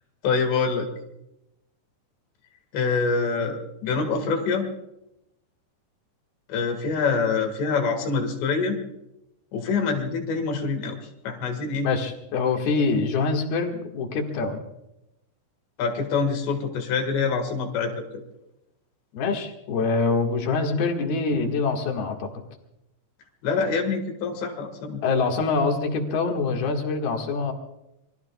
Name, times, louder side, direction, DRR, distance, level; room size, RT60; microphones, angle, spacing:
voice 1, 0.2-0.9 2.7-4.7 6.5-8.8 9.5-11.9 15.8-18.2 23.4-25.0, left 4 dB, 85° left, 3 dB, 4.1 m, -25 dB
voice 2, 11.8-14.6 19.1-22.3 25.0-27.5, left 4 dB, 65° left, 3 dB, 3.5 m, -25 dB
27.5 x 22.0 x 2.4 m, 0.86 s
omnidirectional pair, 4.8 m